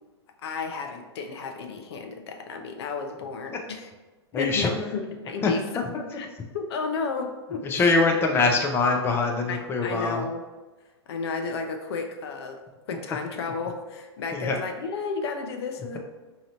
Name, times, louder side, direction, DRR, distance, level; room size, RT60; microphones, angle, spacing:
voice 1, 0.4-3.9 4.3-6.3 6.5-7.9 9.5-10.4 11.1-12.6 12.9-16.0, left 4 dB, 65° left, 4 dB, 0.5 m, -32 dB
voice 2, 4.3-4.9 5.4-6.0 7.6-10.3 14.3-14.6, left 3 dB, 15° left, 2 dB, 0.5 m, -24 dB
4.8 x 2.8 x 2.8 m, 1.2 s
hypercardioid pair, 110°, 15 cm